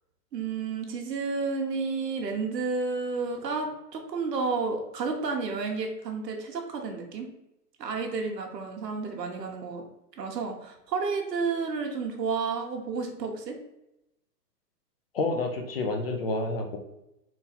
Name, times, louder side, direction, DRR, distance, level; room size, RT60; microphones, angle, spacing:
voice 1, 0.3-7.3 7.8-9.8 10.2-13.6, right 4 dB, 80° right, 2 dB, 1.2 m, -31 dB
voice 2, 15.1-16.8, left 2 dB, 40° left, 3 dB, 0.5 m, -29 dB
3.8 x 2.7 x 4.2 m, 0.87 s
hypercardioid pair, 155°, 48 cm